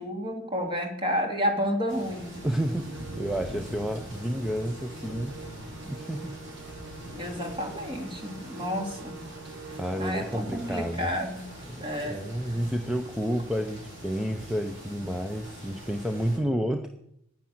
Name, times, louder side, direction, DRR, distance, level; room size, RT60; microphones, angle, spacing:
voice 1, 0.0-2.4 7.1-9.3 10.0-11.5 11.8-12.6, equal, 25° right, 3 dB, 2.3 m, -31 dB
sound 1, 1.9-16.4, equal, 55° right, 6.4 m, -43 dB
voice 2, 2.4-5.4 5.9-6.4 9.8-11.1 11.7-16.9, equal, 5° right, 5 dB, 0.7 m, -30 dB
Musical instrument, 2.8-11.3, right 4 dB, 75° right, 0.9 m, -46 dB
10.5 x 9.8 x 9.5 m, 0.78 s
head